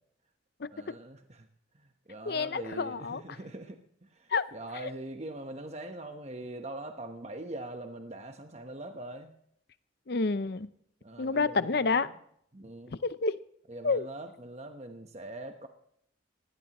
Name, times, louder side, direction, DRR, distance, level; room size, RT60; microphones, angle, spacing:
voice 1, 0.7-1.5 1.7-9.3 11.0-12.1 12.5-13.0 13.7-15.7, right 1 dB, 35° right, 1.1 m, -42 dB
voice 2, 2.3-3.2 4.3-4.5 10.1-10.7 11.2-12.1 13.0-13.4 13.8-14.1, left 4 dB, 55° left, 0.6 m, -28 dB
19.5 x 16.5 x 3.0 m
head